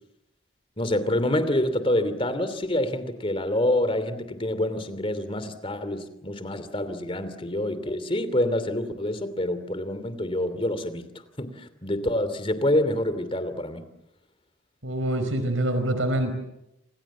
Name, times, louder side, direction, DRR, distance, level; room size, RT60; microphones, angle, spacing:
voice 1, 0.8-11.0 11.4-13.8, left 1 dB, 30° left, 12 dB, 2.8 m, -27 dB
voice 2, 14.8-16.3, right 1 dB, 85° right, 8 dB, 4.7 m, -25 dB
29.0 x 27.0 x 7.4 m, 0.85 s
head